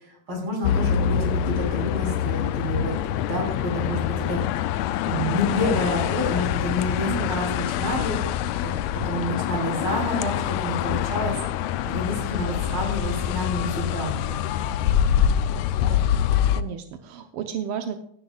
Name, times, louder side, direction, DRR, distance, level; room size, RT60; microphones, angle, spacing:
voice 1, 0.0-3.0 3.2-4.4 5.0-8.7 9.1-14.3, equal, 45° right, -1 dB, 4.3 m, -29 dB
sound 1, 0.6-16.6, left 10 dB, 80° left, 1.8 m, -25 dB
voice 2, 16.5-18.0, right 8 dB, 75° right, 7 dB, 1.4 m, -32 dB
16.5 x 10.0 x 2.3 m, 0.69 s
omnidirectional pair, 3.4 m